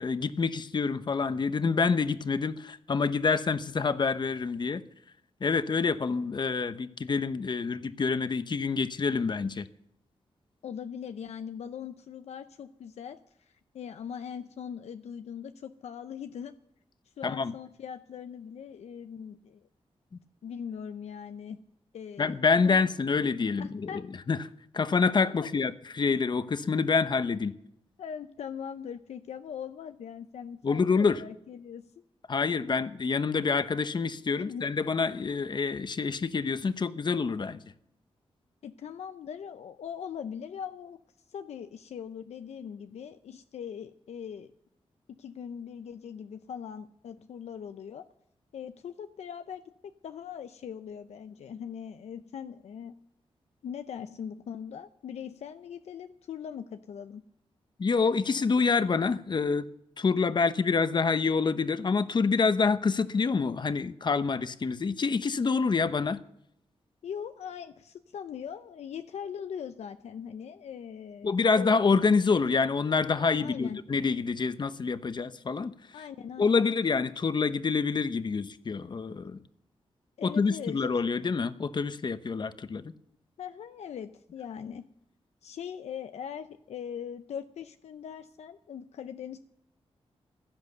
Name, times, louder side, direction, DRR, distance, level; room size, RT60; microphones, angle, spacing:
voice 1, 0.0-4.8 5.4-9.7 17.2-17.5 22.2-24.0 24.3-24.4 24.7-27.5 30.6-31.2 32.3-37.6 57.8-59.7 60.0-66.2 71.2-75.7 76.4-79.4 80.2-82.9, left 4 dB, 45° left, 0.9 m, -27 dB
voice 2, 10.6-16.5 17.2-19.7 20.4-21.6 21.9-22.4 22.6-22.8 23.6-24.0 25.3-25.5 28.0-31.9 34.4-34.6 38.6-41.0 41.3-44.5 45.2-48.0 48.5-49.6 50.0-52.9 53.6-57.2 67.0-71.7 73.4-73.8 75.9-76.7 80.2-80.8 83.4-84.8 85.4-89.4, left 8 dB, 90° left, 0.6 m, -40 dB
16.0 x 10.5 x 6.7 m
wide cardioid pair, 95°, 11 cm